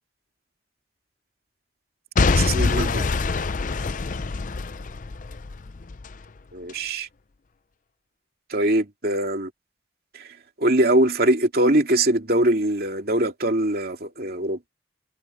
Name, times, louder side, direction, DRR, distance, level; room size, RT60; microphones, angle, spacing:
Boom / Shatter / Crushing, 2.2-6.2 6.7-6.8, left 4 dB, 45° left, 0.5 m, -24 dB
voice 1, 2.3-3.2 6.5-7.1 8.5-9.5 10.1-14.7, right 1 dB, 55° right, 2.8 m, -22 dB
head